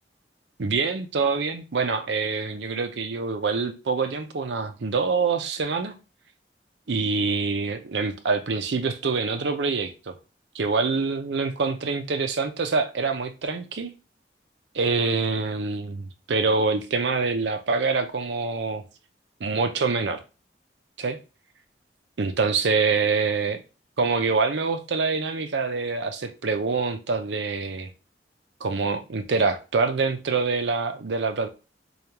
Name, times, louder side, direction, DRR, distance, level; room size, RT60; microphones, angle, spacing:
voice 1, 0.6-5.9 6.9-10.1 10.5-13.9 14.7-18.8 19.4-20.2 21.0-21.2 22.2-23.6 24.0-27.9 28.6-31.5, right 4 dB, 80° right, 0.6 m, -25 dB
5.0 x 2.3 x 2.9 m
head